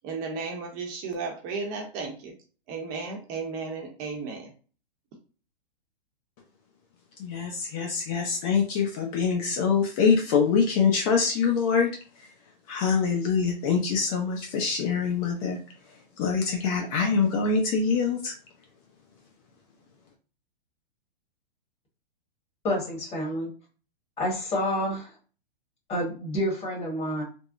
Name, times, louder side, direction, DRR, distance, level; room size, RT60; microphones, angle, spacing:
voice 1, 0.0-2.3 2.7-4.5, right 4 dB, 30° right, 1 dB, 0.7 m, -34 dB
voice 2, 7.2-11.9 12.1-12.3 12.7-18.3, left 5 dB, 40° left, 1 dB, 0.7 m, -25 dB
voice 3, 22.6-23.5 24.2-25.1 25.9-27.2, left 1 dB, 20° left, -2 dB, 1.4 m, -28 dB
3.5 x 2.0 x 2.5 m, 0.37 s
hypercardioid pair, 130°, 29 cm